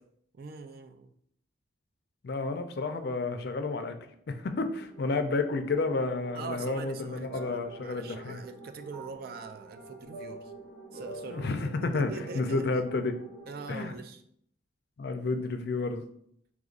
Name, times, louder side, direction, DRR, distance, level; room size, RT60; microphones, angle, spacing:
voice 1, 0.3-1.1 6.3-10.5 10.9-11.4 11.8-12.9 13.5-14.2, right 4 dB, 50° right, 8 dB, 0.3 m, -43 dB
voice 2, 2.2-3.9 4.3-8.4 11.3-13.2 13.7-13.9 15.0-16.0, left 3 dB, 55° left, 8 dB, 0.4 m, -31 dB
sound 1, 4.7-14.0, right 4 dB, 90° right, 1.8 m, -50 dB
sound 2, 6.6-12.8, right 1 dB, 70° right, 1.1 m, -47 dB
5.1 x 3.5 x 2.4 m, 0.68 s
head